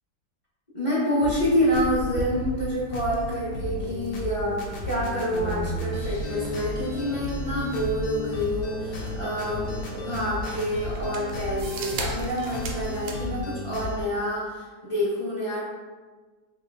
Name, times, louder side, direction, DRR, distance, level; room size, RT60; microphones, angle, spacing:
voice 1, 0.7-9.7 10.0-15.6, equal, 25° left, -9 dB, 0.7 m, -27 dB
sound 1, 1.2-14.1, left 2 dB, 70° left, 0.8 m, -34 dB
sound 2, 1.8-13.2, right 4 dB, 90° right, 1.3 m, -39 dB
3.1 x 2.8 x 3.3 m, 1.4 s
omnidirectional pair, 2.0 m